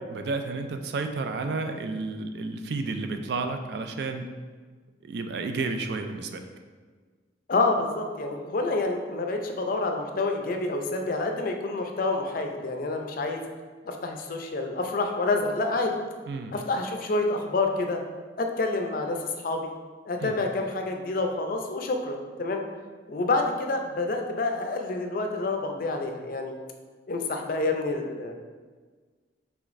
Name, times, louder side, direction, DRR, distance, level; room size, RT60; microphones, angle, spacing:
voice 1, 0.1-4.3 5.0-6.4 16.3-16.5 20.2-20.4, right 3 dB, 60° right, 6 dB, 0.3 m, -31 dB
voice 2, 7.5-13.4 13.8-16.0 16.5-18.0 18.4-19.7 20.0-22.6 23.1-26.6 27.1-28.3, left 3 dB, 50° left, 4 dB, 0.4 m, -28 dB
4.9 x 3.3 x 2.5 m, 1.5 s
head